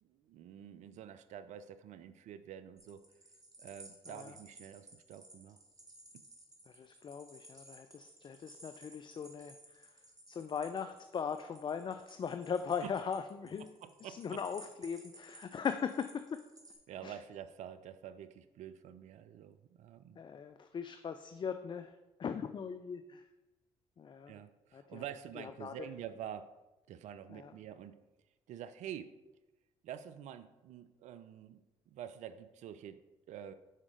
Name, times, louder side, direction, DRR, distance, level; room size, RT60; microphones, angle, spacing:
voice 1, 0.0-3.1 3.6-5.6 13.8-14.4 16.9-20.2 24.3-26.5 26.9-28.0 28.5-29.1 29.8-33.5, right 10 dB, 60° right, 12 dB, 0.4 m, -48 dB
sound 1, 2.8-16.8, right 2 dB, 25° right, 1.7 m, -57 dB
voice 2, 4.1-4.4 6.7-13.7 14.0-16.4 17.0-17.2 20.1-23.3 24.0-24.4 24.7-25.0 25.4-25.9 27.3-27.6, left 6 dB, 35° left, 9 dB, 0.4 m, -40 dB
6.5 x 4.9 x 3.7 m, 1.0 s
hypercardioid pair, 50°, 14 cm